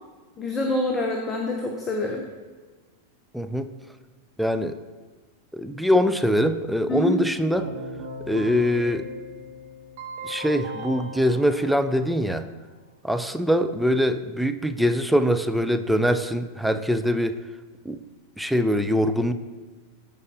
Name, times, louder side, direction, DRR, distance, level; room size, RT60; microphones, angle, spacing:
voice 1, 0.4-2.3 6.9-7.2, left 1 dB, 15° left, 2 dB, 0.8 m, -26 dB
voice 2, 3.3-3.7 4.4-4.7 5.5-7.7 8.3-9.0 10.2-12.5 13.0-17.4 17.8-18.0 18.4-19.3, equal, ahead, 8 dB, 0.4 m, -23 dB
Keyboard (musical), 7.5-12.5, equal, 50° right, 1.5 m, -38 dB
14.5 x 5.3 x 2.6 m, 1.3 s
figure-of-eight pair, 90°, 0 cm